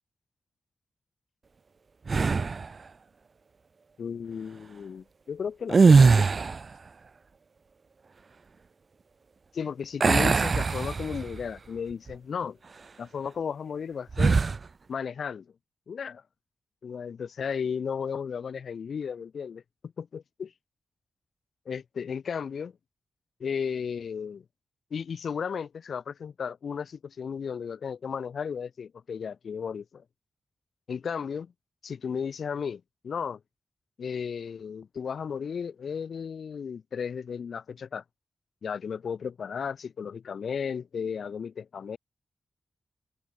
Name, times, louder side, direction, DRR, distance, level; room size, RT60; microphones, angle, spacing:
sound 1, 2.1-2.7 5.6-6.7 10.0-11.4 11.9-12.1 14.1-14.6, right 4 dB, 35° right, 0.7 m, -21 dB
voice 1, 4.0-6.3 9.5-12.6 13.0-14.4 14.9-15.5 15.9-16.2 16.8-19.6 20.0-20.5 21.7-22.7 23.4-24.4 24.9-30.0 30.9-31.5 31.8-33.4 34.0-38.0 38.6-42.0, left 6 dB, 60° left, 5.8 m, -34 dB
open air
wide cardioid pair, 175°, 0 cm